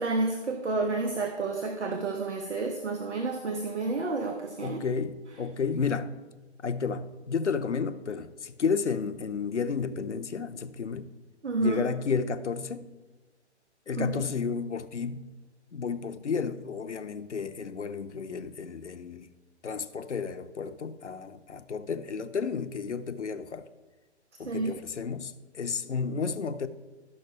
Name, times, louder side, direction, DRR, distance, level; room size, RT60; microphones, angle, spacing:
voice 1, 0.0-4.8 11.4-11.8 14.0-14.1 24.4-24.7, right 3 dB, 75° right, 1.2 m, -30 dB
voice 2, 4.6-6.1 6.6-11.1 11.6-12.9 13.9-15.4 15.7-19.3 19.6-23.7 24.4-26.7, left 5 dB, 80° left, 0.8 m, -32 dB
12.5 x 6.4 x 4.5 m
figure-of-eight pair, 135°, 35 cm